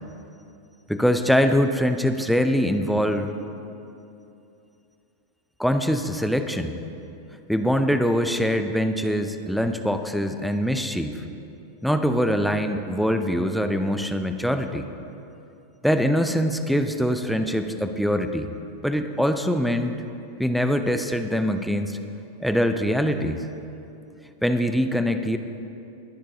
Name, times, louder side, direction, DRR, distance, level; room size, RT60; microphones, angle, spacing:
voice 1, 0.9-3.3 5.6-6.8 7.5-11.2 11.8-14.9 15.8-18.5 18.8-19.9 20.4-22.0 22.4-23.5 24.4-25.4, equal, ahead, 7 dB, 0.6 m, -23 dB
21.0 x 10.5 x 2.8 m, 2.7 s
figure-of-eight pair, 90°, 0 cm